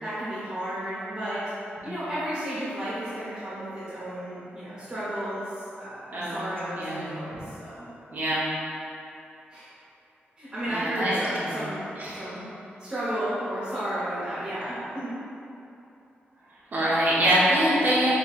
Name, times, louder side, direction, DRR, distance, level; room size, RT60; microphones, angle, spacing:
voice 1, 0.0-1.4 1.8-7.9 9.5-9.7 10.4-11.9 12.1-12.5 12.8-15.1, right 1 dB, 20° right, -13 dB, 0.9 m, -33 dB
voice 2, 6.1-6.5 6.8-7.1 8.1-8.4 10.7-11.6 12.0-12.2 16.7-18.1, right 1 dB, 50° right, -8 dB, 0.8 m, -24 dB
5.3 x 3.0 x 2.4 m, 2.8 s
wide cardioid pair, 130°, 4 cm